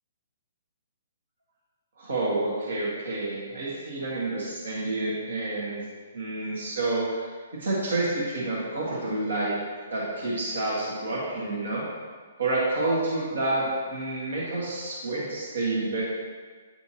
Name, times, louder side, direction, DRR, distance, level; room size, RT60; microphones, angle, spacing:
voice 1, 2.0-5.8 6.1-9.6 9.9-11.8 12.4-16.0, right 2 dB, 75° right, -6 dB, 1.6 m, -29 dB
8.9 x 4.5 x 2.8 m, 1.5 s
hypercardioid pair, 145°, 0 cm